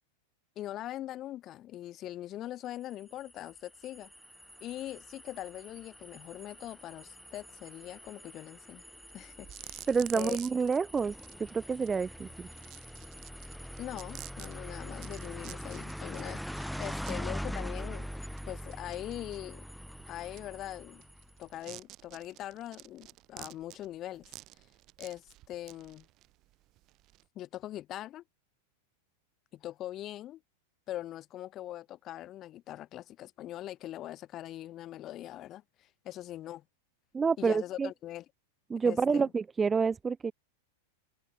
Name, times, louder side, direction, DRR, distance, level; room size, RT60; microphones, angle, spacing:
voice 1, 0.6-4.1 4.6-8.8 9.1-9.9 10.1-10.4 13.8-18.1 18.5-19.6 20.1-21.0 21.4-24.3 25.0-26.0 27.4-28.2 29.5-30.4 30.9-36.6 37.4-38.3 38.8-39.3, left 13 dB, 35° left, 2.1 m, -42 dB
sound 1, 2.9-21.4, equal, ahead, 3.7 m, -43 dB
sound 2, 9.1-9.2 9.4-27.2, right 18 dB, 45° right, 3.3 m, -50 dB
voice 2, 9.9-12.5 37.1-37.9 38.7-40.3, right 5 dB, 15° right, 0.5 m, -28 dB
hypercardioid pair, 110°, 0 cm